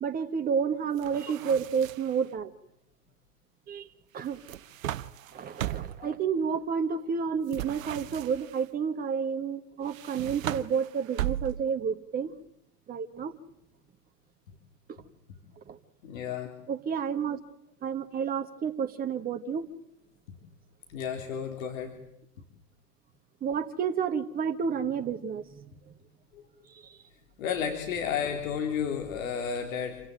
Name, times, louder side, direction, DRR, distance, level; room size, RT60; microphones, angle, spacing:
voice 1, 0.0-2.5 3.7-3.9 4.1-4.4 5.3-12.3 12.9-13.3 14.9-15.0 15.7-15.8 16.7-17.4 17.8-19.7 23.4-25.6 25.9-26.0 26.7-27.0, right 6 dB, 20° right, 7 dB, 1.6 m, -30 dB
sound 1, 1.0-2.2 4.2-6.1 7.5-8.6 9.8-11.8, right 13 dB, 55° right, 1.0 m, -37 dB
voice 2, 16.0-16.5 20.9-21.9 26.3-26.4 27.4-30.0, left 7 dB, 55° left, 4 dB, 3.8 m, -32 dB
27.5 x 17.0 x 9.2 m, 0.77 s
hypercardioid pair, 110°, 48 cm